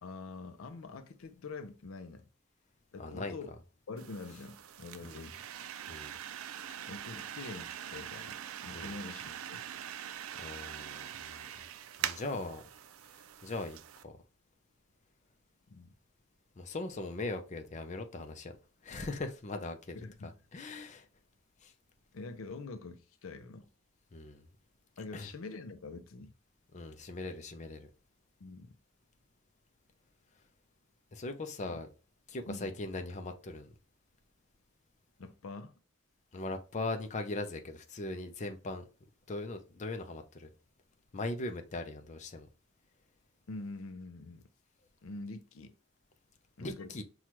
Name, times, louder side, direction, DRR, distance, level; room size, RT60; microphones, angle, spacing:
voice 1, 0.0-2.2 2.9-3.5 3.9-5.5 6.9-9.6 12.3-12.5 15.7-15.9 19.9-20.3 22.1-23.7 25.0-26.3 28.4-28.8 31.6-31.8 32.5-32.7 35.2-35.7 43.5-44.4 45.0-45.7 46.6-46.9, left 3 dB, 80° left, 0.5 m, -45 dB
voice 2, 3.0-3.3 5.0-5.2 5.9-6.1 8.7-8.9 10.4-11.5 12.0-12.6 13.4-13.8 14.0-14.1 16.6-18.5 18.8-20.0 20.2-21.0 21.6-21.7 24.1-24.4 25.1-25.3 26.7-27.9 31.1-31.9 32.3-33.7 36.3-38.8 39.3-40.5 41.1-42.5 46.6-47.0, left 2 dB, 35° left, 0.5 m, -39 dB
sound 1, 4.0-14.0, right 10 dB, 90° right, 0.4 m, -43 dB
5.8 x 2.3 x 3.0 m
head